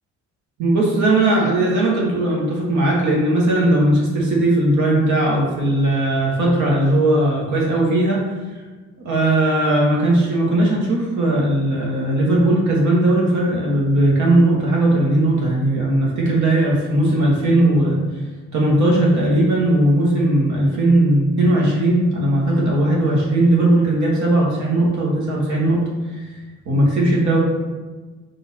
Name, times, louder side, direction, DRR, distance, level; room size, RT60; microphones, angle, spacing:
voice 1, 0.6-8.2 9.0-18.0 18.5-25.8 26.1-26.2 26.6-27.4, right 1 dB, 70° right, -3 dB, 1.2 m, -18 dB
3.9 x 2.5 x 4.1 m, 1.3 s
cardioid pair, 90°, 30 cm